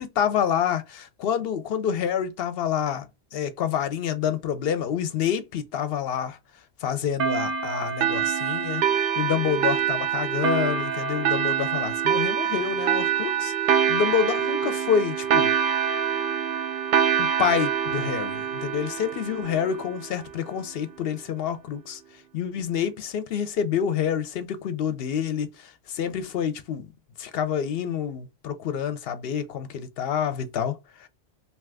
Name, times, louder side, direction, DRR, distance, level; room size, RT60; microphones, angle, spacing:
voice 1, 0.0-3.1 3.3-6.4 6.8-8.8 9.2-13.5 13.9-15.5 17.2-22.0 22.3-25.5 25.9-26.8 27.2-30.8, left 8 dB, 65° left, 0.7 m, -27 dB
sound 1, 7.2-20.3, right 8 dB, 65° right, 0.7 m, -25 dB
2.7 x 2.4 x 3.3 m
omnidirectional pair, 1.1 m